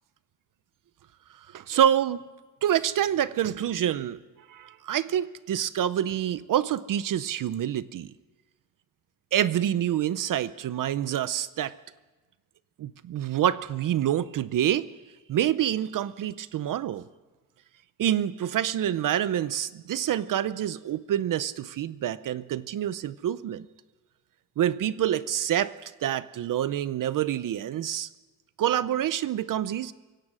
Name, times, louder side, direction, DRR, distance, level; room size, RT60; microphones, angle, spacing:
voice 1, 1.5-2.2 2.6-4.2 4.5-8.1 9.3-11.7 12.8-14.9 15.3-17.0 18.0-23.7 24.6-28.1 28.6-29.9, right 11 dB, 50° right, 15 dB, 0.6 m, -27 dB
24.5 x 17.5 x 6.2 m, 1.2 s
cardioid pair, 165°, 41 cm